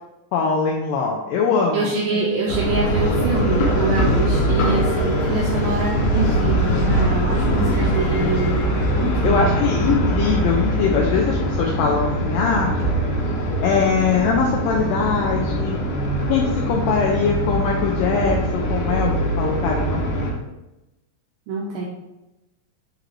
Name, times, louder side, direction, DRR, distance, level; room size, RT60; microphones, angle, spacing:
voice 1, 0.3-1.9 6.3-6.4 7.6-7.7 9.0-12.7 13.6-15.8 16.3-20.4, left 5 dB, 80° left, -1 dB, 2.0 m, -22 dB
voice 2, 1.7-9.6 21.5-21.9, right 3 dB, 80° right, -3 dB, 2.2 m, -25 dB
sound 1, 2.5-20.3, right 1 dB, 65° left, 2.1 m, -22 dB
8.1 x 3.8 x 3.1 m, 0.99 s
omnidirectional pair, 4.7 m